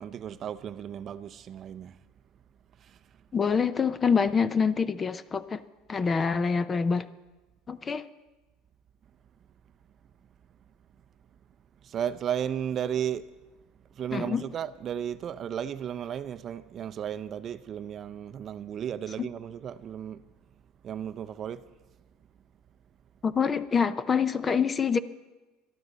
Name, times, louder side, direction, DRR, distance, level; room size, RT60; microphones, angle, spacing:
voice 1, 0.0-2.0 2.8-3.0 11.8-13.3 13.9-20.2 20.8-21.6, right 9 dB, 35° right, 0.6 m, -34 dB
voice 2, 3.3-5.6 5.9-7.1 7.7-8.1 14.1-14.4 19.2-19.3 23.2-25.0, left 6 dB, 20° left, 0.5 m, -26 dB
22.5 x 13.0 x 4.0 m
cardioid pair, 140°, 0 cm